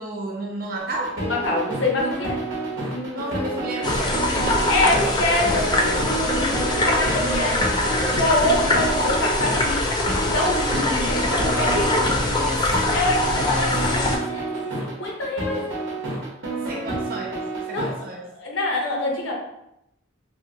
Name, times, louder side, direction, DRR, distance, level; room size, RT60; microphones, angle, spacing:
voice 1, 0.0-1.2 3.0-4.5 4.8-6.2 7.0-7.7 10.7-11.1 11.6-14.2 16.7-18.3, right 1 dB, 50° right, -1 dB, 0.7 m, -32 dB
sound 1, 0.8-17.9, right 2 dB, 80° right, 1.0 m, -29 dB
voice 2, 1.2-2.4 2.9-3.3 4.7-7.6 7.9-9.9 10.2-12.0 12.9-15.7 17.7-19.3, left 2 dB, 75° left, -1 dB, 0.7 m, -26 dB
sound 2, 3.8-14.2, left 2 dB, 25° left, 0.3 m, -23 dB
2.9 x 2.3 x 2.8 m, 0.83 s
head